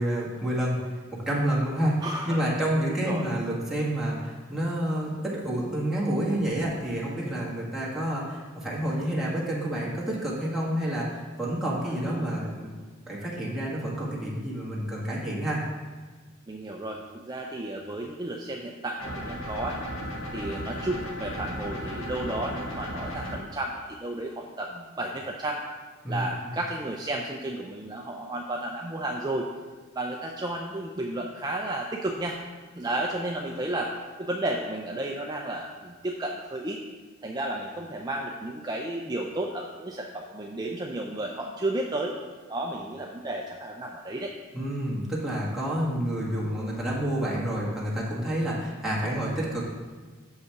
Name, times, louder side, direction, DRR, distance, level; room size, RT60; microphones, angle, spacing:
voice 1, 0.0-2.0 2.2-12.8 13.0-15.6 26.0-26.3 44.5-49.6, right 1 dB, ahead, -7 dB, 1.7 m, -29 dB
voice 2, 2.0-2.4 3.0-3.3 11.9-12.5 16.5-19.8 20.3-25.6 26.1-29.5 30.0-32.4 32.8-33.9 34.2-36.8 37.2-42.1 42.5-44.3, right 1 dB, 20° right, 0 dB, 0.5 m, -32 dB
sound 1, 19.0-23.4, equal, 75° left, 1.6 m, -35 dB
6.8 x 5.6 x 5.8 m, 1.4 s
head